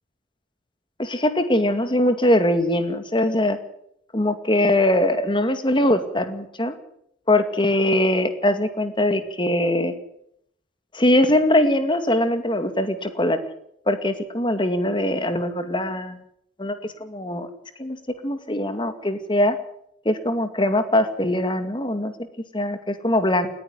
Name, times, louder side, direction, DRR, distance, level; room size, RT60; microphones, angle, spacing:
voice 1, 1.0-3.6 4.1-6.8 7.3-9.9 10.9-13.4 13.9-16.2 16.6-17.5 17.8-18.0 18.2-19.6 20.0-22.1 22.5-23.5, left 1 dB, 25° left, 9 dB, 2.3 m, -21 dB
20.0 x 15.0 x 9.8 m, 0.72 s
head